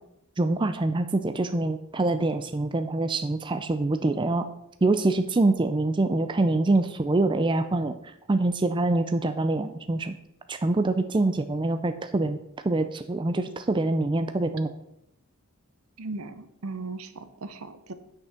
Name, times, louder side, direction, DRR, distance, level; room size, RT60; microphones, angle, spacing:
voice 1, 0.4-4.4 4.8-7.9 8.3-10.2 10.5-12.4 12.6-14.7, right 2 dB, 20° right, 9 dB, 0.4 m, -25 dB
voice 2, 16.0-17.9, right 3 dB, 75° right, 11 dB, 0.9 m, -37 dB
9.0 x 6.3 x 5.7 m, 0.80 s
head